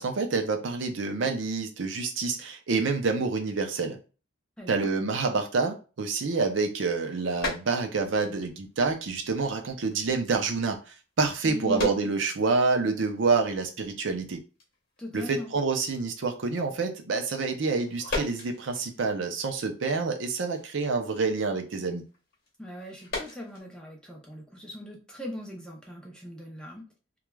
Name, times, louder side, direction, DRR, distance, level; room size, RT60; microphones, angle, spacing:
voice 1, 0.0-4.0 4.7-14.4 15.1-22.0, right 4 dB, 65° right, 5 dB, 0.5 m, -27 dB
voice 2, 4.6-4.9 11.4-11.9 15.0-15.5 22.6-26.9, left 1 dB, 5° left, -1 dB, 0.5 m, -39 dB
sound 1, 6.5-8.2 8.5-8.9 9.4-9.6 9.9-10.0 10.2-10.4 11.3-12.8 13.2-13.3 13.4-13.8 14.2-14.3 14.6-15.0 15.3-15.5 15.9-16.0 17.6-19.5 19.8-23.6, left 3 dB, 50° left, 0.9 m, -38 dB
3.1 x 2.3 x 2.2 m, 0.34 s
head